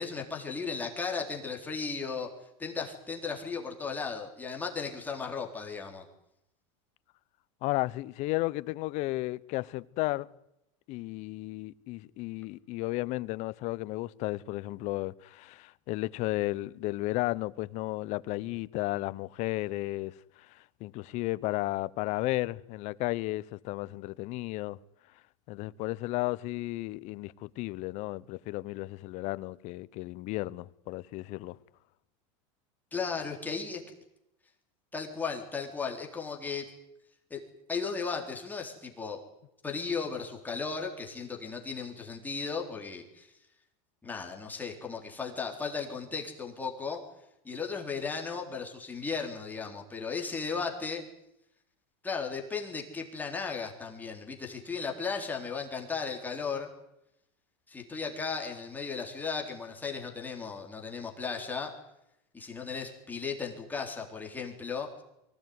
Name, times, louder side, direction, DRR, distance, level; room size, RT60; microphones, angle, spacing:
voice 1, 0.0-2.3 2.6-6.1 32.9-33.8 34.9-36.7 37.3-37.4 37.7-39.2 39.6-43.3 44.0-47.0 47.4-51.0 52.0-56.7 57.7-61.7 62.3-65.0, left 5 dB, 10° left, 3.8 m, -36 dB
voice 2, 7.6-10.3 10.9-20.1 20.8-24.8 25.5-31.6, left 19 dB, 45° left, 0.9 m, -33 dB
24.0 x 17.5 x 9.6 m
supercardioid pair, 145°, 17 cm